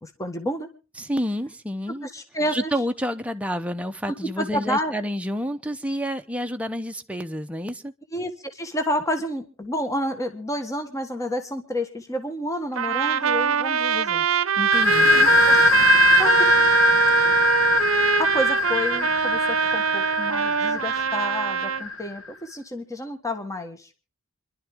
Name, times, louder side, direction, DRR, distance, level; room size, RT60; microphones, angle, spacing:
voice 1, 0.0-0.7 2.0-2.7 4.1-5.0 8.1-14.3 15.0-16.5 18.2-23.9, equal, 15° left, 1.4 m, -30 dB
voice 2, 1.0-2.1 2.5-7.9 14.6-15.1, equal, 5° right, 0.8 m, -29 dB
Trumpet, 12.8-21.8, right 7 dB, 75° right, 0.7 m, -22 dB
sound 1, 14.7-22.2, left 4 dB, 70° left, 1.4 m, -22 dB
27.0 x 11.5 x 3.6 m
head